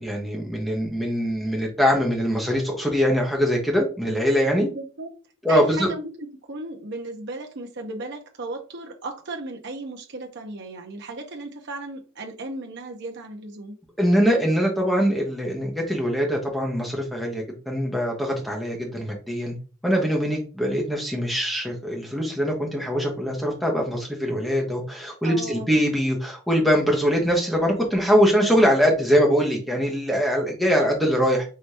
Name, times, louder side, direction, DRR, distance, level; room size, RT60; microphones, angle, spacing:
voice 1, 0.0-4.7 5.4-5.9 14.0-19.5 19.8-31.4, equal, ahead, 1.1 m, -22 dB
voice 2, 4.6-5.1 5.5-13.7 25.2-25.8, right 2 dB, 55° right, 0.8 m, -35 dB
4.9 x 3.2 x 2.8 m
head